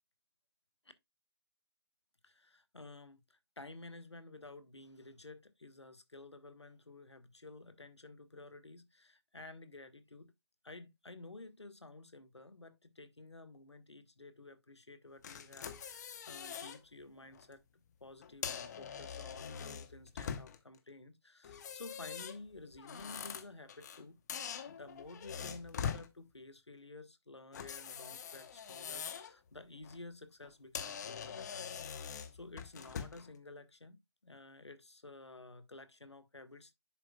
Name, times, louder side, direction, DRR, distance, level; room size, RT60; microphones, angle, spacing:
voice 1, 2.2-10.3 10.6-17.6 18.0-24.2 24.7-36.7, left 2 dB, 90° left, 1.2 m, -53 dB
sound 1, 15.2-16.8 17.2-17.4 18.2-20.8 21.4-24.0 24.3-26.1 27.5-29.3 29.7-30.0 30.4-30.5 30.7-33.3, left 7 dB, 40° left, 0.9 m, -43 dB
10.5 x 4.6 x 2.3 m
figure-of-eight pair, 145°, 14 cm